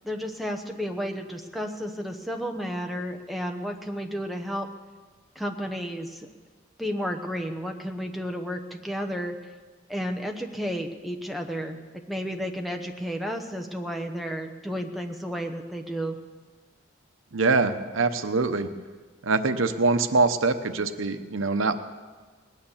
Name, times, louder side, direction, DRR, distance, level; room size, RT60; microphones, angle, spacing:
voice 1, 0.0-4.7 5.4-6.3 6.8-9.4 9.9-11.8 12.1-16.2, equal, ahead, 3 dB, 0.9 m, -32 dB
voice 2, 17.3-18.7 19.2-21.7, right 3 dB, 85° right, 10 dB, 0.9 m, -24 dB
20.0 x 9.4 x 7.3 m, 1.4 s
head